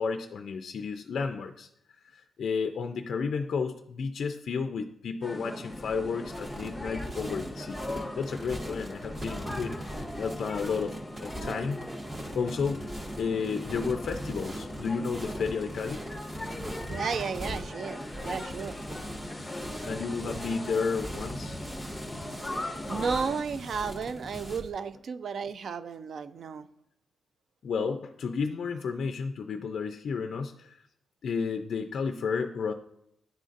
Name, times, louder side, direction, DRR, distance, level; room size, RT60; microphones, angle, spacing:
voice 1, 0.0-1.7 2.1-7.8 8.2-9.8 10.2-11.8 12.4-12.9 13.2-16.0 19.8-21.6 27.6-30.7 31.2-32.7, left 5 dB, 55° left, 6 dB, 0.3 m, -32 dB
sound 1, 5.2-23.4, left 1 dB, 10° left, 0.6 m, -40 dB
sound 2, 6.3-24.7, right 1 dB, 30° right, 0.9 m, -40 dB
voice 2, 16.9-18.8 22.6-26.7, right 5 dB, 50° right, 13 dB, 0.3 m, -33 dB
10.5 x 3.9 x 2.5 m, 0.77 s
wide cardioid pair, 160°, 0 cm